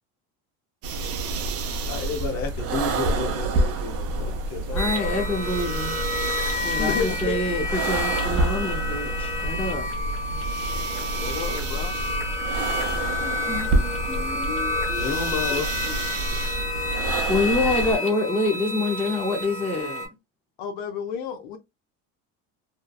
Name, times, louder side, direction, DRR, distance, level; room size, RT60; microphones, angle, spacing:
sound 1, 0.8-18.0, right 2 dB, 40° right, 0.5 m, -28 dB
voice 1, 1.9-5.7 15.0-15.7, left 4 dB, 45° left, 1.0 m, -32 dB
voice 2, 4.7-6.0 6.6-9.9 13.2-15.6 15.9-16.0 17.3-20.1, left 2 dB, 5° left, 0.5 m, -27 dB
sound 2, 4.8-20.1, left 2 dB, 20° left, 1.0 m, -30 dB
voice 3, 6.8-7.6 11.2-11.9 20.6-21.6, left 6 dB, 70° left, 0.6 m, -31 dB
2.9 x 2.2 x 2.2 m
cardioid pair, 130°, 36 cm